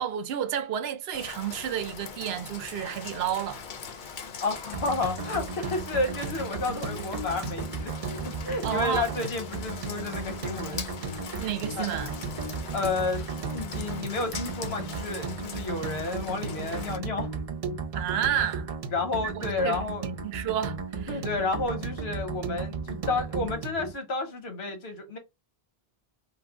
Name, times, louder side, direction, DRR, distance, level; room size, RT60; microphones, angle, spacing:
voice 1, 0.0-3.6 8.6-9.0 11.4-12.1 17.9-18.7 19.2-19.8 20.2-21.2, right 9 dB, 80° right, 0.8 m, -30 dB
Rain, 1.1-17.0, left 6 dB, 60° left, 0.6 m, -41 dB
voice 2, 4.4-7.9 8.2-11.2 11.8-11.9 12.7-17.4 18.9-20.0 21.1-25.2, left 3 dB, 90° left, 1.1 m, -31 dB
sound 1, 4.7-23.9, right 4 dB, 45° right, 0.5 m, -35 dB
3.0 x 2.0 x 3.5 m
omnidirectional pair, 1.0 m